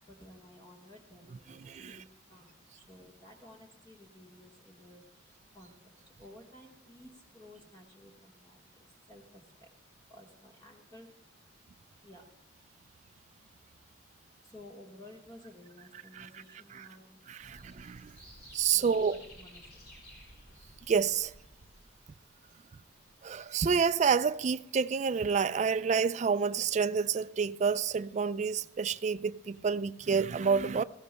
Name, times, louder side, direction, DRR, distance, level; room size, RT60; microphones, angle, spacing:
voice 1, 0.1-9.7 10.1-11.1 12.0-12.2 14.4-17.5 18.7-19.8, left 1 dB, 20° left, 1.3 m, -54 dB
voice 2, 1.6-2.0 16.2-16.3 16.7-16.9 17.3-18.2 18.5-19.2 20.9-21.3 23.2-30.8, right 6 dB, 35° right, 0.3 m, -29 dB
sound 1, 17.4-22.1 22.8-23.5 23.8-23.9, equal, 55° left, 5.2 m, -54 dB
20.0 x 15.0 x 2.2 m
head